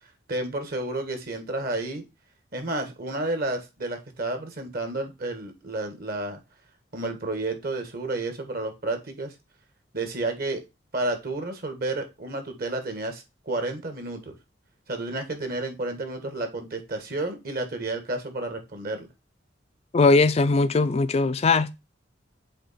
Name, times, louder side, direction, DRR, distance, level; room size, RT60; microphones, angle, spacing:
voice 1, 0.3-2.0 2.5-6.4 6.9-9.3 9.9-10.6 10.9-14.3 14.9-19.1, right 2 dB, 50° right, 1.5 m, -31 dB
voice 2, 19.9-21.7, left 3 dB, 35° left, 0.4 m, -20 dB
7.8 x 3.0 x 4.2 m
head